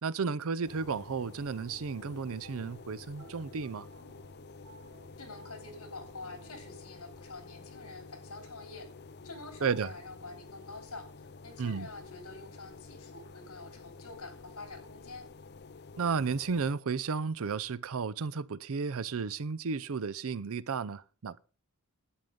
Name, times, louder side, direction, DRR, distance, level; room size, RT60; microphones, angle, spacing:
voice 1, 0.0-3.9 9.6-9.9 11.6-11.9 16.0-21.4, right 5 dB, 65° right, 0.6 m, -33 dB
sound 1, 0.6-16.7, left 4 dB, 50° left, 0.6 m, -50 dB
sound 2, 1.9-6.9, right 4 dB, 90° right, 2.4 m, -59 dB
voice 2, 5.2-8.9 9.2-11.1 11.4-15.3, left 3 dB, 70° left, 3.2 m, -46 dB
11.5 x 8.9 x 5.3 m
head